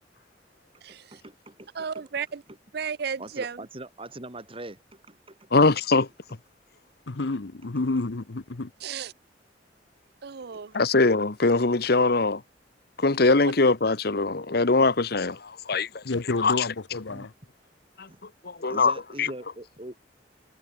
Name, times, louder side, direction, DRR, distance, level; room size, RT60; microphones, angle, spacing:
voice 1, 0.9-2.1 2.5-2.6 3.2-5.4 10.5-10.6 17.1-17.3 18.1-18.2 18.6-20.1, right 1 dB, 30° right, 3.8 m, -42 dB
voice 2, 1.7-2.4 2.7-3.6 8.8-9.1 10.2-10.7, right 6 dB, 60° right, 0.6 m, -33 dB
voice 3, 5.5-6.1 10.7-12.4 13.0-16.0 16.4-16.5 18.0-18.1 18.4-19.3, left 3 dB, 60° left, 1.2 m, -22 dB
voice 4, 7.1-8.7 16.0-17.3, left 3 dB, 85° left, 1.0 m, -29 dB
head